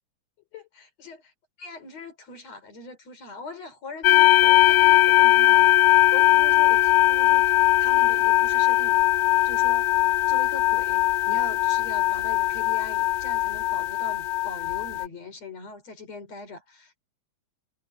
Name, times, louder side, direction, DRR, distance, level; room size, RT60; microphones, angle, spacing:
voice 1, 0.5-1.3 1.6-7.5 7.8-9.0 9.4-9.9 10.3-17.0, left 3 dB, 60° left, 5.0 m, -41 dB
sound 1, 4.0-15.1, left 15 dB, 85° left, 1.4 m, -20 dB
omnidirectional pair, 3.3 m